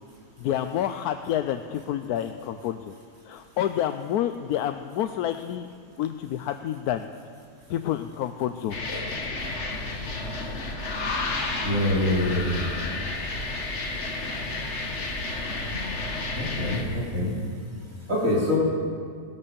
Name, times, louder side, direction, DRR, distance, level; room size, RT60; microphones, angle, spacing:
voice 1, 0.4-2.9 3.2-5.7 6.0-7.1 7.7-8.8 10.0-10.1, left 11 dB, 85° left, 8 dB, 1.1 m, -28 dB
sound 1, 8.7-16.8, left 2 dB, 50° left, 1.7 m, -31 dB
voice 2, 11.6-12.6 16.3-17.3 18.1-18.6, left 1 dB, 55° right, -5 dB, 3.7 m, -25 dB
17.5 x 11.0 x 6.9 m, 2.1 s
omnidirectional pair, 1.6 m